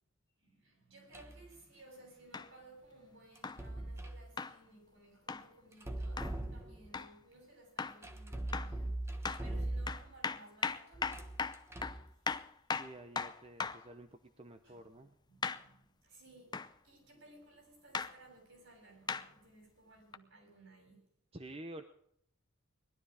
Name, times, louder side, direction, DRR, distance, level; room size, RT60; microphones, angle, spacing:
voice 1, 0.4-11.6 12.2-12.8 14.6-21.1, right 2 dB, 65° right, 7.8 m, -59 dB
sound 1, 1.1-1.5 3.4-4.2 5.7-7.0 8.0-10.2 10.9-12.1, right 1 dB, 15° right, 1.3 m, -40 dB
sound 2, 2.3-2.5 3.4-3.6 4.4-4.6 5.3-5.5 6.2-6.3 6.9-7.1 7.8-8.0 8.5-8.8 9.2-9.5 9.9-13.9 15.4-15.7 16.5-16.7 17.9-18.1 19.1-19.3 20.1-20.2, left 5 dB, 20° left, 0.6 m, -38 dB
voice 2, 12.7-15.1 21.3-21.8, right 1 dB, 30° right, 0.9 m, -50 dB
20.0 x 12.5 x 5.0 m
head